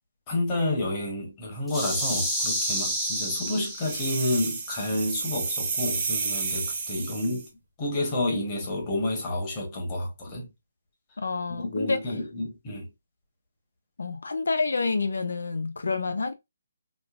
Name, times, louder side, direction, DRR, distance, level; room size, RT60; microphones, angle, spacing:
voice 1, 0.3-7.5 7.8-10.5 11.6-12.9, left 1 dB, 15° left, 1.1 m, -29 dB
sound 1, 1.7-4.2, right 1 dB, ahead, 0.5 m, -29 dB
sound 2, 3.8-7.5, right 5 dB, 20° right, 0.8 m, -31 dB
voice 2, 11.2-12.0 14.0-16.3, left 4 dB, 85° left, 0.6 m, -28 dB
5.1 x 2.1 x 2.5 m
hypercardioid pair, 175°, 0 cm